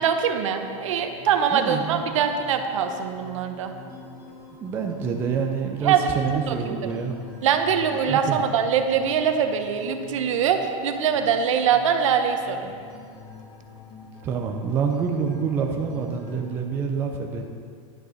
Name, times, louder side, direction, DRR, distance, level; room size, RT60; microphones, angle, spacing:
voice 1, 0.0-3.7 5.8-6.1 6.5-6.8 7.4-12.7, right 7 dB, 65° right, 6 dB, 1.1 m, -23 dB
sound 1, 0.6-16.7, left 5 dB, 25° left, 1.4 m, -45 dB
voice 2, 1.5-2.3 4.6-7.2 8.1-8.4 14.2-17.5, right 6 dB, 15° right, 2 dB, 0.4 m, -27 dB
11.0 x 7.7 x 6.2 m, 2.2 s
supercardioid pair, 175°, 17 cm